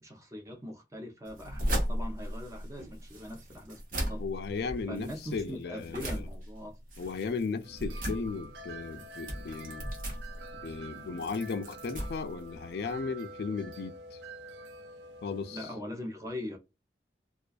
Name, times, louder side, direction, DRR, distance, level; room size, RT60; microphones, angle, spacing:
voice 1, 0.0-4.2 4.9-6.7 15.5-16.6, left 1 dB, 15° right, 0.5 m, -41 dB
sound 1, 1.2-13.0, equal, 50° right, 0.8 m, -37 dB
voice 2, 4.2-6.3 7.0-9.9 10.6-14.2 15.2-15.7, left 4 dB, 65° left, 0.3 m, -36 dB
sound 2, 7.6-15.7, right 2 dB, 80° right, 0.4 m, -47 dB
2.3 x 2.3 x 2.4 m
head